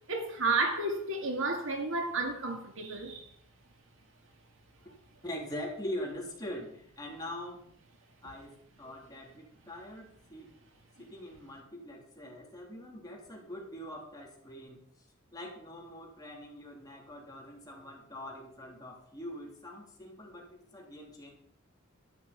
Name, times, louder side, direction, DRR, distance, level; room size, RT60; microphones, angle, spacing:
voice 1, 0.1-3.3, right 3 dB, 65° right, 2.3 m, -31 dB
voice 2, 5.2-7.7 8.2-10.5 11.0-14.8 15.3-21.3, left 1 dB, 20° left, 3.4 m, -43 dB
12.5 x 9.5 x 5.3 m
head